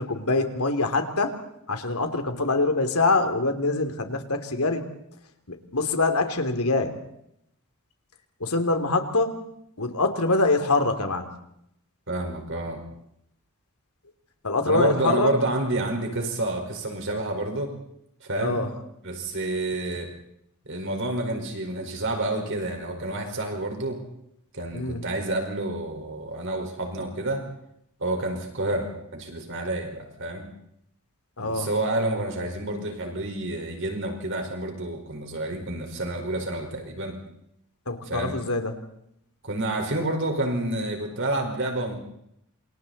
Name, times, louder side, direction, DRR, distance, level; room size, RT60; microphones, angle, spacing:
voice 1, 0.0-1.3 1.7-4.8 5.5-7.0 8.4-9.4 9.8-11.4 14.4-15.3 18.4-18.7 24.7-25.1 31.4-31.7 37.8-38.8, left 3 dB, 80° left, 7 dB, 3.1 m, -24 dB
voice 2, 12.1-12.8 14.7-17.7 18.2-18.6 19.0-20.1 20.6-24.0 24.5-27.4 28.0-30.4 31.4-37.1 38.1-38.3 39.4-42.0, right 1 dB, 60° right, 3 dB, 5.0 m, -29 dB
28.0 x 28.0 x 4.3 m, 0.76 s
head